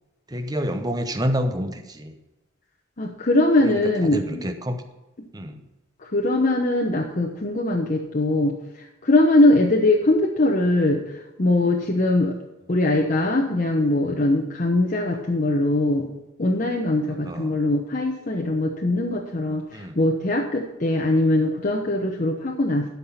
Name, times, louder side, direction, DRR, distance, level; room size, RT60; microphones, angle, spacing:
voice 1, 0.3-2.2 3.6-3.8 4.1-4.8 5.3-5.6 17.2-17.6 19.7-20.0, equal, 20° right, 7 dB, 0.8 m, -28 dB
voice 2, 3.0-4.5 6.0-12.3 12.7-16.1 16.4-22.9, left 2 dB, 40° left, 0 dB, 1.0 m, -21 dB
12.0 x 5.9 x 5.8 m, 1.0 s
head